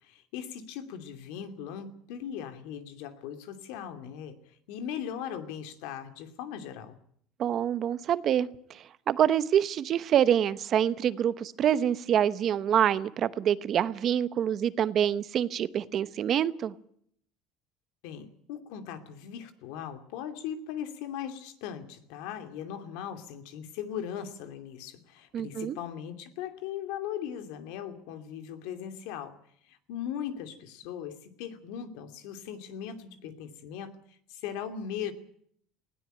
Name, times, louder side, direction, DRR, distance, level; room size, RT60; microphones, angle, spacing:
voice 1, 0.0-7.0 18.0-29.4 29.6-35.1, left 9 dB, 80° left, 9 dB, 2.7 m, -39 dB
voice 2, 7.4-8.5 9.1-16.7 25.3-25.8, right 9 dB, 40° right, 15 dB, 0.9 m, -26 dB
20.0 x 17.0 x 9.1 m, 0.66 s
cardioid pair, 150°, 0 cm